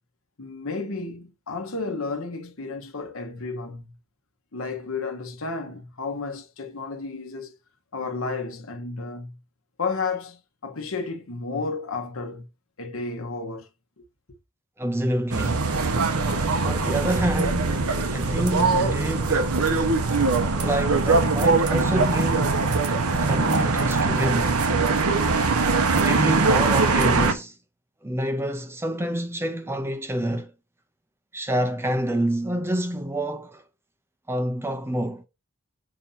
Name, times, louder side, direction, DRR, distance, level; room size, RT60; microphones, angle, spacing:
voice 1, 0.4-3.9 4.5-7.5 7.9-9.3 9.8-12.5 12.8-13.7 14.0-14.1, left 4 dB, 65° left, 1.1 m, -32 dB
voice 2, 14.8-15.7 16.6-17.8 18.1-19.6 20.5-22.7 23.2-24.6 26.0-27.5 28.0-30.5 31.3-33.6 34.3-35.3, right 1 dB, 10° right, 0.5 m, -27 dB
sound 1, 15.3-27.3, right 3 dB, 85° right, 1.0 m, -22 dB
6.8 x 2.7 x 5.6 m
head